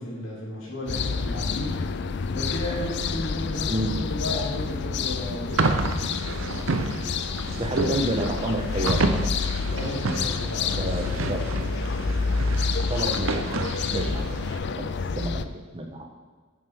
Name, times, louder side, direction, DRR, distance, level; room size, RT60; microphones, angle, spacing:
voice 1, 0.0-1.8 2.3-5.6 9.7-11.3 14.0-14.1 14.6-14.8, left 1 dB, 85° left, -5 dB, 3.0 m, -34 dB
sound 1, 0.9-15.4, left 5 dB, 60° left, 0.4 m, -29 dB
sound 2, 5.5-14.6, right 3 dB, 80° right, 0.7 m, -30 dB
voice 2, 7.6-9.3 10.7-11.5 12.9-14.4 14.8-14.9 15.1-15.5 15.7-16.1, right 1 dB, 30° right, 2 dB, 1.2 m, -29 dB
10.0 x 7.5 x 3.7 m, 1.5 s
head